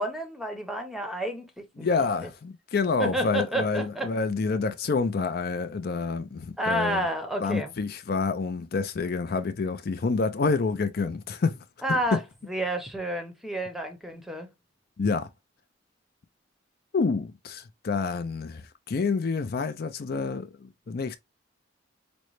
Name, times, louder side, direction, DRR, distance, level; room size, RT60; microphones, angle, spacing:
voice 1, 0.0-1.9 3.0-4.1 6.6-7.7 11.8-12.2 12.5-14.5, right 1 dB, ahead, 0.7 m, -30 dB
voice 2, 1.8-7.0 7.4-11.6 11.9-12.2 15.0-15.3 16.9-20.5 20.9-21.2, left 4 dB, 50° left, 0.4 m, -28 dB
5.1 x 2.2 x 3.0 m
head